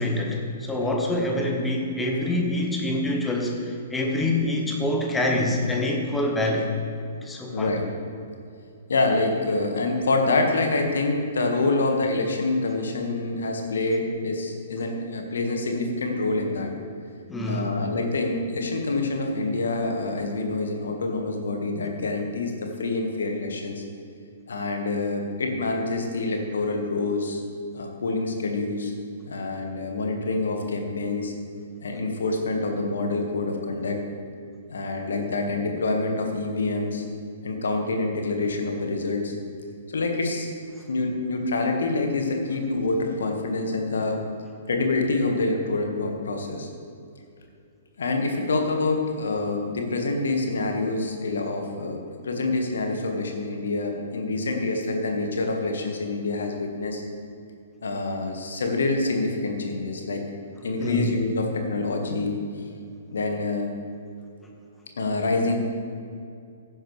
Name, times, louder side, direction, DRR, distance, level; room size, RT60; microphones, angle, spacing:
voice 1, 0.0-6.7 7.2-7.7 17.3-17.7 60.8-61.1, left 1 dB, 10° left, 0 dB, 1.6 m, -26 dB
voice 2, 7.5-7.9 8.9-16.7 17.5-23.8 24.5-27.4 27.7-28.9 29.3-31.3 31.8-34.0 34.7-37.0 37.4-39.3 39.9-40.5 40.9-44.2 44.7-46.7 48.0-57.0 57.8-60.2 60.6-62.4 63.1-63.7 65.0-65.6, left 3 dB, 65° left, 3 dB, 1.7 m, -26 dB
15.5 x 10.0 x 3.3 m, 2.4 s
figure-of-eight pair, 115°, 0 cm